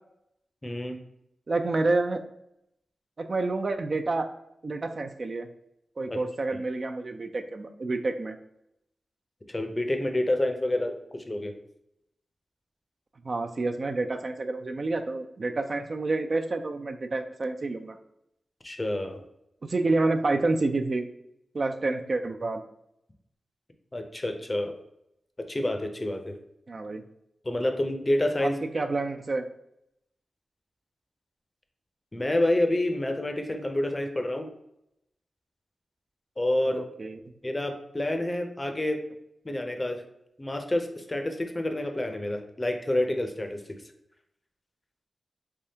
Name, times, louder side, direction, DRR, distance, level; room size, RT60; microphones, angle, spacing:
voice 1, 0.6-1.0 6.1-6.2 9.5-11.5 18.6-19.2 23.9-24.7 25.4-26.4 27.4-28.6 32.1-34.5 36.4-36.8 37.4-39.0 39.4-40.0 40.4-43.6, left 1 dB, 25° left, 5 dB, 0.5 m, -28 dB
voice 2, 1.5-2.3 3.2-4.3 4.6-5.5 6.0-8.4 13.2-18.0 19.6-21.1 21.5-22.6 26.7-27.0 28.4-29.4 36.6-37.2, right 3 dB, 50° right, 7 dB, 0.3 m, -28 dB
3.4 x 3.4 x 2.8 m, 0.80 s
wide cardioid pair, 80°, 0 cm